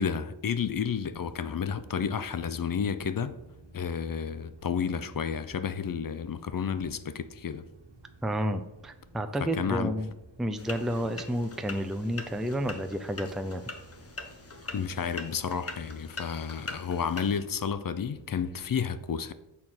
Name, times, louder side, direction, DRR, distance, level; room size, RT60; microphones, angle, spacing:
voice 1, 0.0-3.4 3.7-7.7 9.4-9.9 14.7-19.3, left 7 dB, 45° left, 0.6 m, -31 dB
sound 1, 0.6-18.7, right 1 dB, 65° right, 1.7 m, -54 dB
voice 2, 8.2-10.1 10.4-13.6, equal, ahead, 0.5 m, -31 dB
sound 2, 10.6-17.4, left 3 dB, 30° left, 1.0 m, -43 dB
6.7 x 3.7 x 6.1 m
cardioid pair, 60°, 46 cm